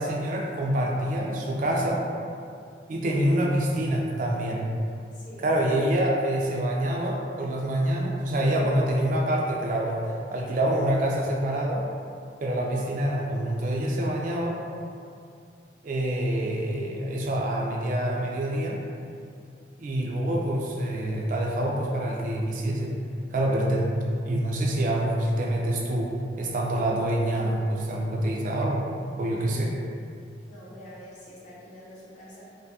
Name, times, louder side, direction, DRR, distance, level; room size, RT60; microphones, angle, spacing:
voice 1, 0.0-2.0 2.9-4.6 5.4-10.0 10.3-11.8 12.4-14.5 15.8-18.8 19.8-23.0 23.3-23.9 24.2-26.1 26.4-28.9 29.2-29.7, right 1 dB, 45° right, -1 dB, 0.3 m, -26 dB
voice 2, 5.1-5.5 30.5-32.4, equal, 45° left, -8 dB, 0.7 m, -46 dB
2.6 x 2.2 x 2.7 m, 2.4 s
head